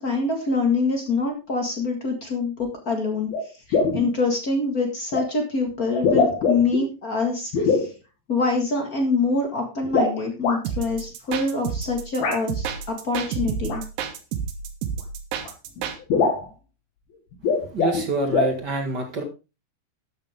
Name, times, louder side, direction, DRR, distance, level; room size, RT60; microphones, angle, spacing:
voice 1, 0.0-7.9 8.3-13.8, left 3 dB, 50° left, 3 dB, 1.0 m, -25 dB
sound 1, 2.6-2.7 3.3-3.4 3.7-4.1 5.1-5.3 5.9-6.8 7.5-7.9 9.8-10.6 12.2-12.4 13.6-13.8 15.0-15.1 15.4-15.5 15.8-15.9 16.1-16.5 17.3-18.0 18.3-18.6, left 4 dB, 70° left, 4.1 m, -22 dB
sound 2, 10.6-16.0, right 7 dB, 80° right, 3.3 m, -30 dB
voice 2, 17.7-19.2, right 2 dB, 45° right, 4 dB, 1.4 m, -26 dB
12.5 x 9.0 x 3.6 m, 0.29 s
omnidirectional pair, 4.6 m